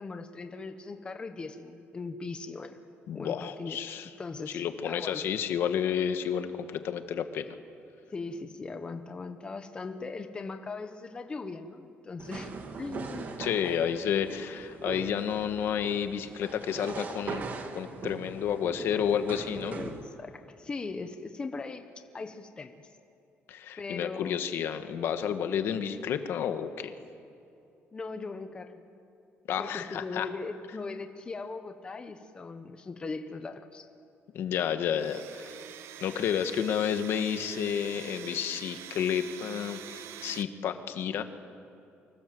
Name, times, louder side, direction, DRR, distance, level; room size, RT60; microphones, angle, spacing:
voice 1, 0.0-2.8 3.1-3.8 4.2-5.2 8.1-12.5 12.8-13.7 19.7-21.9 22.1-22.7 23.8-24.4 27.9-28.8 29.6-33.9, left 3 dB, 20° left, 7 dB, 1.2 m, -39 dB
voice 2, 3.1-4.1 4.5-7.5 13.4-17.4 17.7-19.7 23.5-26.9 29.5-30.3 34.3-35.6 36.0-41.2, left 8 dB, 65° left, 8 dB, 1.5 m, -31 dB
sound 1, 12.2-20.0, right 4 dB, 45° right, 2.3 m, -41 dB
Domestic sounds home sounds, 34.9-40.4, right 10 dB, 85° right, 1.0 m, -45 dB
28.5 x 25.0 x 7.8 m, 2.7 s
cardioid pair, 160°, 4 cm